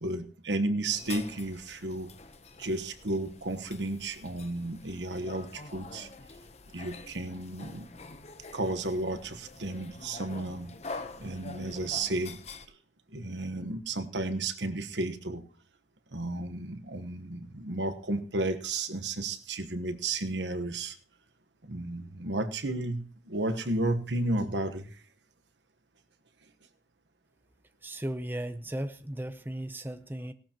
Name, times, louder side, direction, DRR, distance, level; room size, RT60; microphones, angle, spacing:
voice 1, 0.0-2.1 2.6-6.1 6.7-7.9 8.5-12.4 13.1-15.5 16.1-21.0 21.6-25.0, right 2 dB, 85° right, 10 dB, 1.2 m, -33 dB
sound 1, 0.9-12.7, left 3 dB, 40° left, 0.9 m, -46 dB
voice 2, 27.8-30.3, right 1 dB, 10° right, 9 dB, 0.7 m, -36 dB
17.5 x 12.5 x 3.0 m, 0.40 s
head